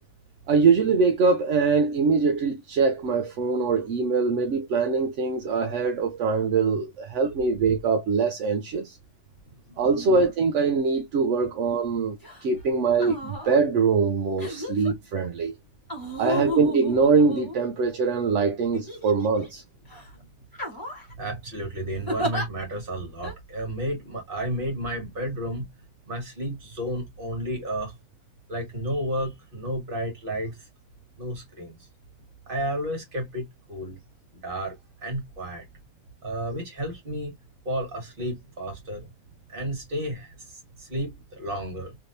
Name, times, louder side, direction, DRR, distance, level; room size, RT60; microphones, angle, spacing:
voice 1, 0.5-9.0 9.8-15.5 16.2-19.6, right 4 dB, 65° right, 0.8 m, -23 dB
sound 1, 12.2-12.4 12.9-13.6 14.4-14.9 15.9-18.0 18.7-19.5 19.9-20.1 20.5-21.1 22.1-22.5 23.2-23.3, equal, 15° left, 1.4 m, -33 dB
voice 2, 21.1-25.7 26.1-27.9 28.5-30.7 31.2-31.9 32.5-34.0 34.3-35.6 36.2-37.3 37.6-39.1 39.5-42.0, right 1 dB, 35° right, 1.7 m, -32 dB
3.4 x 2.9 x 2.6 m
omnidirectional pair, 1.6 m